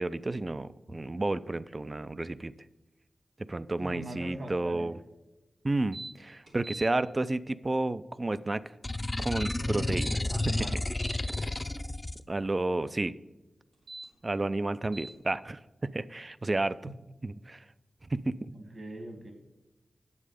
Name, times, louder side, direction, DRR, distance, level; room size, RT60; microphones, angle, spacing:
voice 1, 0.0-2.5 3.5-5.0 5.6-8.6 9.2-10.2 10.5-10.7 12.3-13.1 14.2-16.8 17.2-17.6 18.1-18.5, right 2 dB, 35° right, 16 dB, 0.4 m, -31 dB
voice 2, 3.8-4.9 9.4-10.8 16.8-16.9 18.5-19.3, right 1 dB, 55° right, 5 dB, 2.1 m, -40 dB
sound 1, 5.9-6.1 6.5-6.9 9.2-10.2 10.7-11.4 13.7-14.1 14.9-15.1, right 2 dB, 85° right, 3.1 m, -42 dB
sound 2, 8.8-12.2, left 2 dB, 25° left, 0.6 m, -31 dB
9.6 x 7.5 x 5.0 m, 1.1 s
cardioid pair, 65°, 0 cm